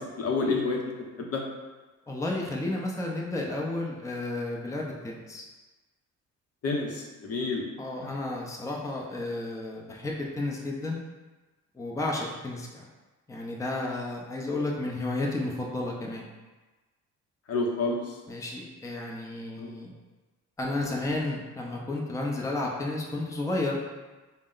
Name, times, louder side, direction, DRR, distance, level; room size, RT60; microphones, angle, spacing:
voice 1, 0.0-1.4 6.6-7.6 17.5-18.0 19.6-19.7, left 3 dB, 55° left, 0 dB, 0.7 m, -29 dB
voice 2, 2.1-5.4 7.8-11.0 11.7-12.9 13.3-16.3 18.3-19.9 20.6-23.8, left 2 dB, 10° left, -2 dB, 0.6 m, -32 dB
4.1 x 2.1 x 3.8 m, 1.2 s
cardioid pair, 90°, 30 cm